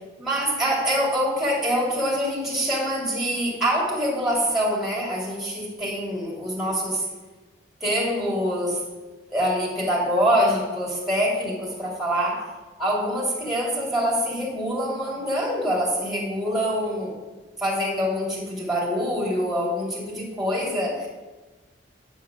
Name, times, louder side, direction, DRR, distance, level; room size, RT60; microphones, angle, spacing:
voice 1, 0.2-7.1 7.8-8.8 9.3-12.4 12.8-17.1 17.6-21.1, equal, ahead, -4 dB, 2.8 m, -25 dB
9.0 x 4.6 x 7.0 m, 1.2 s
head